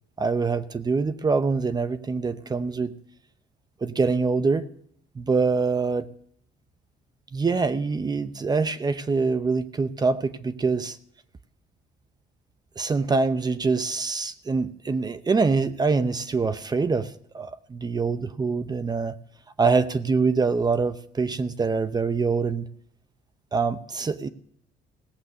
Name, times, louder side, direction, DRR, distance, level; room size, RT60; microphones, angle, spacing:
voice 1, 0.2-2.9 3.8-4.7 5.2-6.1 7.3-11.0 12.8-19.2 19.6-22.7 23.5-24.3, right 4 dB, 25° right, 13 dB, 0.8 m, -24 dB
18.0 x 8.1 x 6.7 m, 0.67 s
cardioid pair, 110°, 17 cm